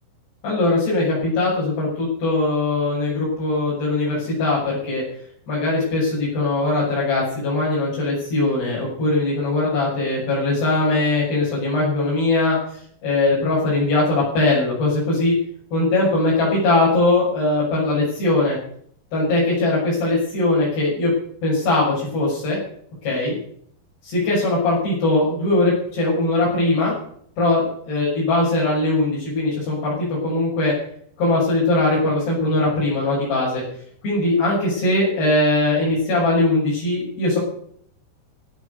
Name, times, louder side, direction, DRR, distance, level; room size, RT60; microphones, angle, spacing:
voice 1, 0.4-5.0 5.5-15.3 15.7-18.6 19.1-21.1 21.4-22.6 23.0-23.4 24.0-27.0 27.4-30.7 31.2-33.6 34.0-37.4, left 2 dB, 80° left, -8 dB, 8.9 m, -20 dB
16.5 x 10.0 x 6.9 m, 0.63 s
omnidirectional pair, 4.7 m